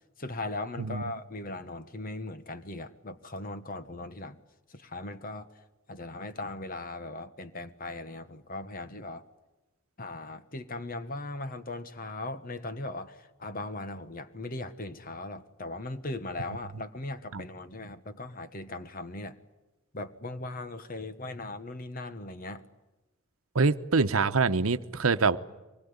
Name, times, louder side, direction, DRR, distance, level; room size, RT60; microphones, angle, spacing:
voice 1, 0.2-4.4 4.7-5.5 5.9-9.2 10.0-19.4 19.9-22.6, left 2 dB, 45° left, 1.3 m, -38 dB
voice 2, 0.8-1.1 17.3-17.4 23.5-25.4, right 4 dB, 90° right, 0.9 m, -25 dB
24.5 x 20.5 x 9.6 m
head